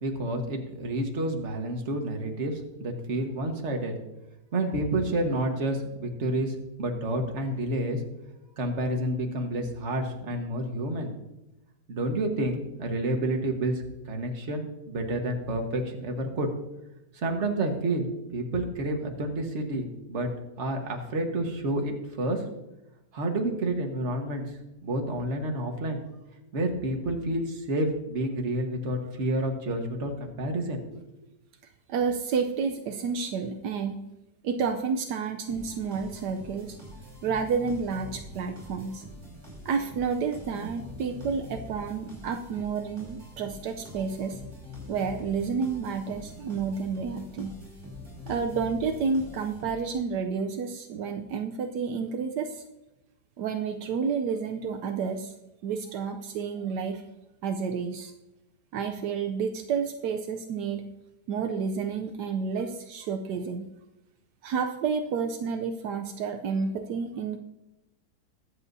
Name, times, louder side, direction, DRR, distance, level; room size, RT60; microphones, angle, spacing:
voice 1, 0.0-3.9 4.5-8.0 8.6-11.1 11.9-16.5 17.1-20.3 20.6-22.4 23.1-26.0 26.5-31.0, right 1 dB, 45° right, 3 dB, 1.6 m, -29 dB
voice 2, 31.9-34.0 34.4-36.8 37.2-39.0 39.6-44.4 44.9-47.5 48.3-52.6 53.4-55.3 55.6-57.0 57.4-58.1 58.7-60.8 61.3-63.7 64.4-67.4, right 5 dB, 80° right, 5 dB, 1.3 m, -30 dB
sound 1, 35.5-50.0, left 1 dB, 25° right, 5.1 m, -44 dB
21.5 x 8.1 x 2.7 m, 0.97 s
omnidirectional pair, 1.8 m